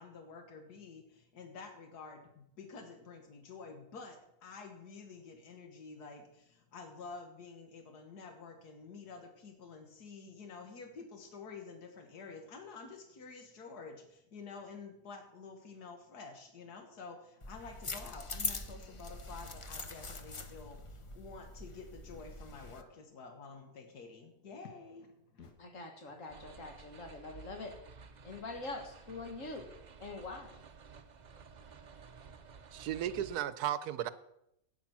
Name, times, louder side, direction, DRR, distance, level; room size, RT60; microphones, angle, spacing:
voice 1, 0.0-25.5, left 4 dB, 85° left, 1.9 m, -50 dB
sound 1, 17.4-22.8, left 3 dB, 30° left, 0.6 m, -43 dB
voice 2, 25.6-27.8 28.2-30.6, left 3 dB, 55° left, 1.8 m, -44 dB
sound 2, 26.3-33.4, right 5 dB, 40° right, 0.6 m, -54 dB
voice 3, 32.7-34.1, right 11 dB, 80° right, 1.2 m, -35 dB
11.0 x 9.2 x 6.0 m
omnidirectional pair, 1.6 m